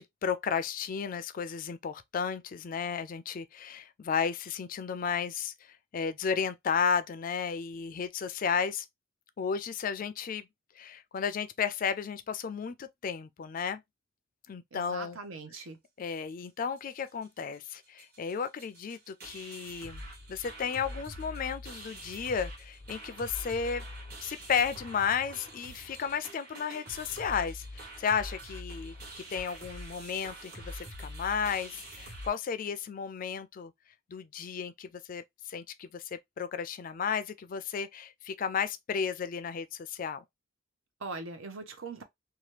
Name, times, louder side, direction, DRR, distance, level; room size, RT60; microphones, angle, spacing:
voice 1, 0.0-5.5 5.9-8.9 9.4-10.5 10.8-13.8 14.5-15.2 16.0-20.0 20.3-23.8 24.2-33.7 34.1-40.2, left 6 dB, 45° left, 0.3 m, -33 dB
voice 2, 14.7-15.8 41.0-42.0, right 3 dB, 80° right, 0.7 m, -41 dB
sound 1, 16.8-16.9 17.1-17.4 17.7-17.8 18.0-32.3, equal, 50° right, 1.3 m, -44 dB
2.9 x 2.3 x 3.1 m
head